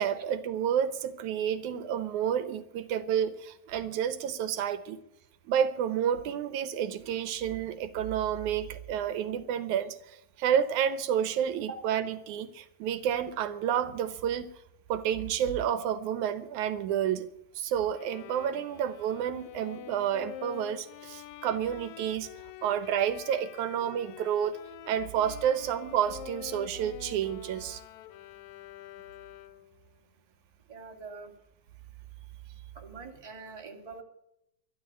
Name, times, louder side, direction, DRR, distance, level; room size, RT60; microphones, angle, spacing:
voice 1, 0.0-5.0 5.5-14.5 14.9-17.3 17.6-22.3 22.6-24.6 24.9-27.8, right 9 dB, 80° right, 2.3 m, -30 dB
Bowed string instrument, 17.9-29.8, left 12 dB, 75° left, 2.0 m, -46 dB
voice 2, 30.7-31.3 32.7-34.0, right 4 dB, 15° right, 2.0 m, -43 dB
12.5 x 12.0 x 8.4 m
omnidirectional pair, 3.4 m